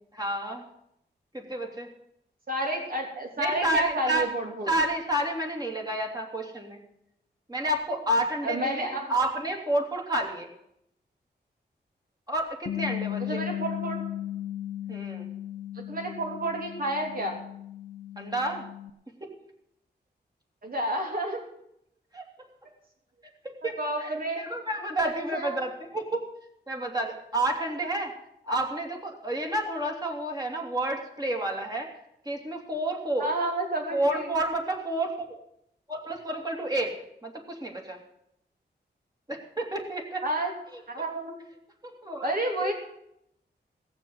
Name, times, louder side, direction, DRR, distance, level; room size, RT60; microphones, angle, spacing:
voice 1, 0.1-0.6 1.3-1.9 3.4-4.3 4.7-6.8 7.5-10.5 12.3-13.4 14.9-15.3 18.2-18.6 19.2-19.3 22.1-22.2 23.6-23.7 24.0-26.3 26.7-28.1 28.4-31.9 32.2-33.3 33.9-35.4 35.9-36.9 37.2-38.0 39.3-40.2 41.8-42.3 42.6-42.7, right 1 dB, 20° right, 1 dB, 2.9 m, -30 dB
voice 2, 2.5-4.7 8.4-9.1 13.2-14.0 15.7-17.4 20.6-21.4 23.8-24.4 25.0-25.6 33.2-34.3 40.2-40.5 40.9-41.4 42.2-42.7, right 1 dB, 55° right, 1 dB, 3.3 m, -30 dB
Bass guitar, 12.7-18.9, left 12 dB, 80° left, 0.6 m, -36 dB
17.0 x 7.0 x 7.8 m, 0.77 s
wide cardioid pair, 90°, 18 cm